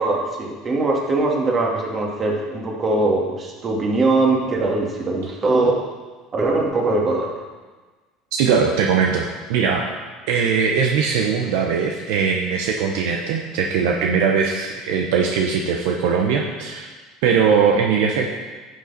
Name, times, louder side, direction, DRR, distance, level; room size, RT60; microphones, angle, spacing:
voice 1, 0.0-5.8 6.3-7.3, right 2 dB, 35° right, -1 dB, 2.2 m, -21 dB
voice 2, 8.3-9.9 10.3-16.9 17.2-18.3, right 6 dB, 75° right, 1 dB, 0.8 m, -20 dB
10.5 x 6.9 x 4.2 m, 1.3 s
hypercardioid pair, 80°, 0 cm